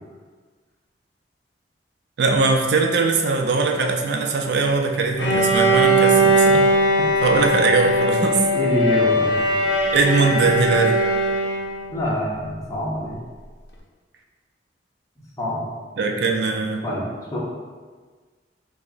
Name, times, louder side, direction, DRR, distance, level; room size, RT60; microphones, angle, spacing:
voice 1, 2.2-6.6 7.2-8.4 9.9-11.0 16.0-16.8, right 4 dB, 65° right, 3 dB, 0.4 m, -20 dB
Bowed string instrument, 5.2-11.9, right 1 dB, 80° left, 0.6 m, -19 dB
voice 2, 8.5-9.4 11.9-13.2 15.4-15.6 16.8-17.0 17.3-17.4, left 1 dB, 20° left, -7 dB, 0.7 m, -25 dB
4.7 x 2.0 x 2.5 m, 1.4 s
head